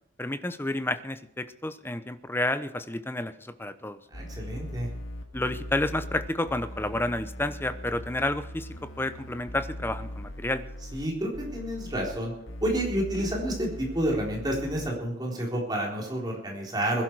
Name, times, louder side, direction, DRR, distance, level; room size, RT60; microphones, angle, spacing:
voice 1, 0.2-4.0 5.3-8.7 9.0-10.6, left 1 dB, 10° left, 11 dB, 0.7 m, -30 dB
sound 1, 4.1-11.1 11.3-12.2 12.5-14.9, equal, 80° left, 2.1 m, -40 dB
voice 2, 4.1-4.9 10.9-12.3 12.6-17.0, right 1 dB, 20° right, -2 dB, 3.9 m, -29 dB
21.0 x 11.5 x 4.7 m, 0.81 s
head